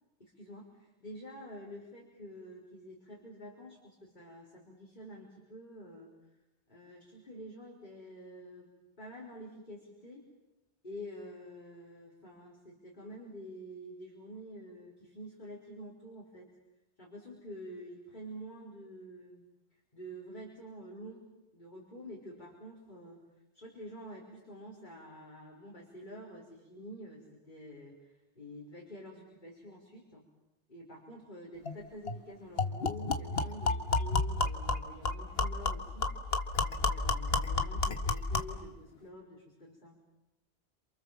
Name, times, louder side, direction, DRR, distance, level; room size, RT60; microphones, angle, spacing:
voice 1, 0.2-6.1 6.7-8.7 9.0-10.3 10.8-16.5 17.0-19.4 19.9-21.2 21.5-23.2 23.5-30.2 30.7-36.1 36.6-40.0, equal, 45° left, -3 dB, 4.9 m, -48 dB
sound 1, 31.7-31.8 32.1-32.2 32.6-38.6, left 3 dB, 60° left, 1.8 m, -31 dB
28.5 x 27.5 x 7.4 m, 0.96 s
omnidirectional pair, 1.2 m